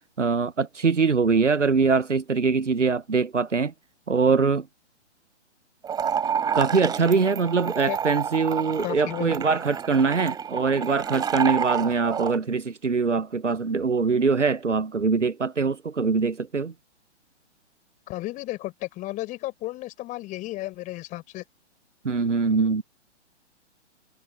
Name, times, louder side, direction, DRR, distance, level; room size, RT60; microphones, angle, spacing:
voice 1, 0.2-3.7 4.1-4.6 6.5-16.7 22.0-22.8, right 4 dB, 90° right, 0.8 m, -23 dB
sound 1, 5.8-12.4, right 7 dB, 10° right, 3.1 m, -29 dB
voice 2, 8.8-9.3 18.1-21.4, left 17 dB, 20° left, 5.7 m, -33 dB
figure-of-eight pair, 125°, 35 cm